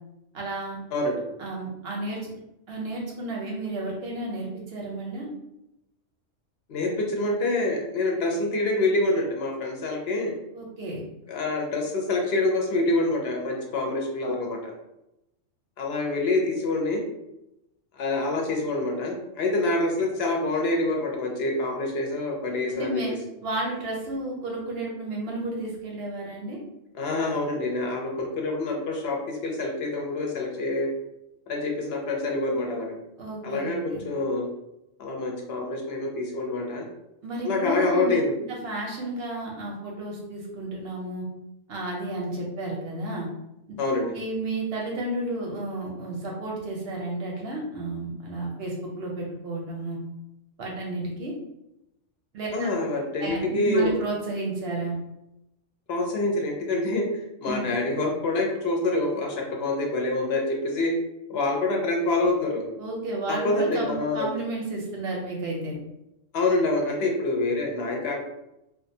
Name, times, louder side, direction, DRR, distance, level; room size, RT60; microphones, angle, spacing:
voice 1, 0.3-0.8 1.4-2.3 2.7-5.3 10.5-11.0 22.7-23.1 23.4-26.6 33.2-34.1 37.2-38.1 38.5-41.2 41.7-43.3 44.1-50.0 50.6-51.3 52.3-52.7 53.2-55.0 57.5-57.7 62.8-65.8, right 2 dB, 65° right, -2 dB, 0.7 m, -32 dB
voice 2, 0.9-1.2 6.7-10.3 11.3-14.7 15.8-17.0 18.0-23.0 26.9-30.9 31.5-33.0 33.4-34.4 35.0-36.9 37.4-38.3 43.8-44.1 52.5-54.0 55.9-57.1 57.4-60.9 61.3-62.6 63.3-64.3 66.3-68.3, left 2 dB, 65° left, 0 dB, 0.7 m, -26 dB
2.3 x 2.2 x 2.6 m, 0.88 s
omnidirectional pair, 1.3 m